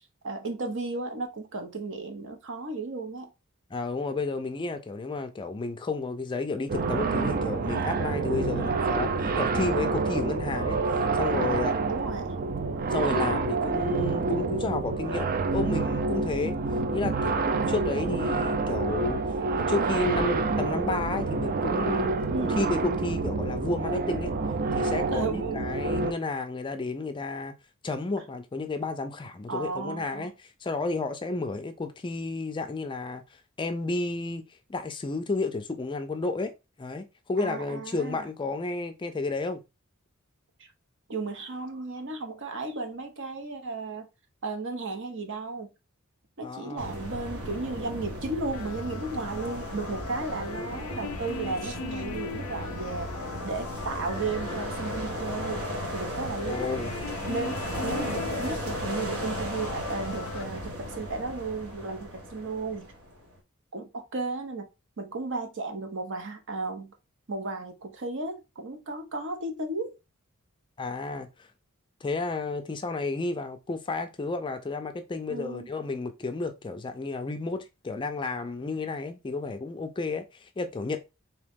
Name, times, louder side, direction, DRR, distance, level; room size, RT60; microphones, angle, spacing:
voice 1, 0.2-3.3 11.9-12.5 22.3-22.7 25.1-25.6 29.5-30.3 37.4-38.2 41.1-44.1 44.4-45.7 46.4-53.2 53.4-55.7 55.9-56.9 57.3-62.9 63.7-64.7 65.0-66.9 67.3-69.9 75.3-75.7, right 3 dB, 60° right, 0.8 m, -34 dB
voice 2, 3.7-11.8 12.9-16.6 16.9-24.3 24.7-27.5 27.8-30.3 30.6-33.2 33.6-36.5 36.8-39.6 46.4-46.9 56.4-56.9 70.8-71.3 72.0-81.0, left 3 dB, 20° left, 0.4 m, -32 dB
sound 1, 6.7-26.1, right 3 dB, 40° right, 0.4 m, -28 dB
sound 2, 46.8-63.3, equal, 80° right, 1.2 m, -35 dB
sound 3, 48.5-60.4, left 6 dB, 80° left, 0.4 m, -41 dB
3.7 x 2.8 x 3.5 m
head